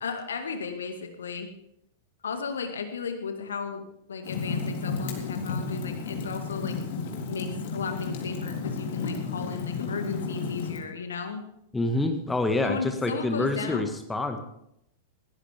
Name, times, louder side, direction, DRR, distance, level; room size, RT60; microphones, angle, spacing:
voice 1, 0.0-1.5 2.2-6.8 7.3-11.4 12.6-13.9, left 5 dB, 65° left, 6 dB, 2.1 m, -35 dB
Fire, 4.2-10.8, left 5 dB, 50° left, 3.7 m, -32 dB
voice 2, 11.7-14.4, left 2 dB, 10° left, 6 dB, 1.7 m, -27 dB
21.0 x 17.0 x 3.6 m, 0.77 s
figure-of-eight pair, 95°, 0 cm